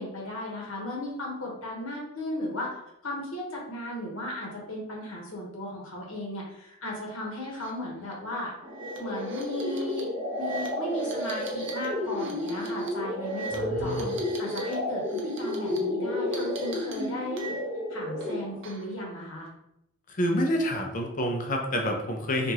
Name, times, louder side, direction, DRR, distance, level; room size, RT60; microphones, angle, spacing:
voice 1, 0.0-2.7 3.0-8.5 9.0-10.1 10.4-14.1 14.4-17.6 17.9-19.5, left 1 dB, 70° left, -2 dB, 1.2 m, -36 dB
sound 1, 7.5-7.7 8.0-8.1 8.7-14.7 15.0-15.8 16.3-17.8 18.2-19.0, right 4 dB, 55° right, 0.7 m, -44 dB
sound 2, 8.6-18.6, left 1 dB, 40° right, 1.2 m, -31 dB
voice 2, 13.5-14.2 20.1-22.5, equal, 35° left, 3 dB, 0.6 m, -28 dB
4.6 x 2.5 x 2.8 m, 0.81 s
head